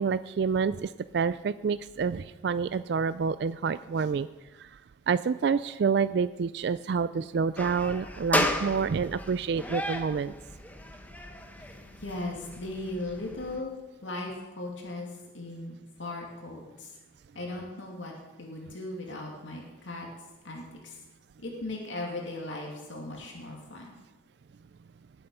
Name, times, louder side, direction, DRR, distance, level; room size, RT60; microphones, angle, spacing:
voice 1, 0.0-4.3 4.6-4.7 5.1-10.3, right 5 dB, 60° right, 14 dB, 0.3 m, -28 dB
sound 1, 7.6-13.6, left 1 dB, 10° left, 0.8 m, -34 dB
voice 2, 12.0-13.7 14.0-15.1 15.3-16.9 17.3-20.1 20.4-21.0 21.4-23.9, left 2 dB, 75° left, -1 dB, 2.5 m, -38 dB
19.0 x 7.9 x 5.5 m, 1.1 s
head